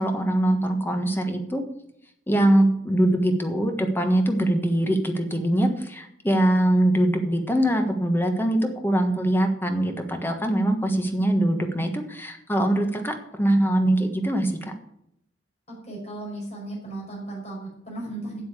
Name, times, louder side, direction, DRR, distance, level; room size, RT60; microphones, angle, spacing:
voice 1, 0.0-1.6 2.3-14.5, right 1 dB, 10° left, 5 dB, 1.4 m, -22 dB
voice 2, 15.8-18.4, right 2 dB, 40° left, -3 dB, 5.6 m, -35 dB
8.2 x 7.9 x 8.3 m, 0.75 s
head